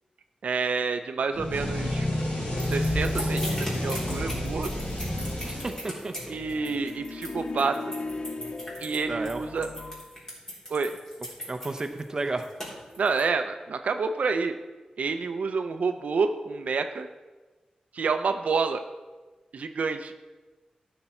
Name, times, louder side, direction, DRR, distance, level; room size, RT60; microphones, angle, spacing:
voice 1, 0.4-2.1 2.7-4.7 6.3-7.8 8.8-9.7 10.7-10.9 13.0-14.6 15.0-17.1 17.9-18.8 19.5-20.1, right 4 dB, 75° right, 7 dB, 0.5 m, -28 dB
sound 1, 1.3-6.2, left 1 dB, 85° left, 3.0 m, -29 dB
sound 2, 2.6-13.2, equal, 20° left, 3.3 m, -38 dB
voice 2, 5.4-6.4 9.1-9.4 11.4-12.4, right 2 dB, 25° right, 6 dB, 0.7 m, -32 dB
sound 3, 6.2-10.1, left 3 dB, 40° left, 0.4 m, -37 dB
13.0 x 5.9 x 4.3 m, 1.2 s
wide cardioid pair, 145°, 2 cm